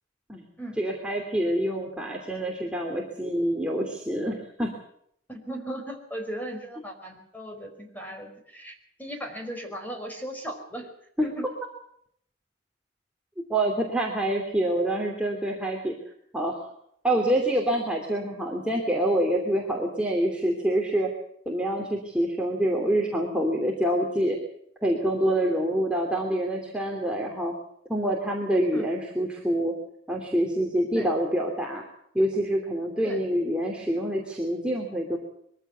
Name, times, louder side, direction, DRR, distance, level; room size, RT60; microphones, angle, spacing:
voice 1, 0.8-4.7 11.2-11.3 13.5-15.9 16.3-16.7 17.0-21.1 21.4-24.4 24.8-27.5 27.9-29.7 30.1-31.8 32.1-35.2, right 1 dB, 5° right, -1 dB, 2.9 m, -26 dB
voice 2, 5.3-10.9 11.2-11.5 17.1-17.3 28.7-28.9 30.9-31.1 33.0-33.2, right 1 dB, 10° left, 3 dB, 5.1 m, -37 dB
23.0 x 15.0 x 8.2 m, 0.70 s
head